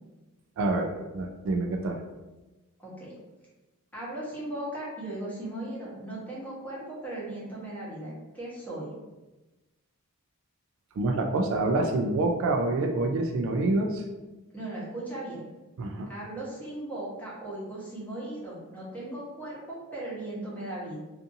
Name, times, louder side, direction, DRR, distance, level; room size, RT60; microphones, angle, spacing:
voice 1, 0.6-2.0 11.0-14.0 15.8-16.1, right 2 dB, 60° right, 2 dB, 0.3 m, -27 dB
voice 2, 2.8-3.1 3.9-8.9 14.5-15.4 16.1-21.0, right 1 dB, 5° left, -8 dB, 0.9 m, -37 dB
2.6 x 2.4 x 2.6 m, 1.1 s
head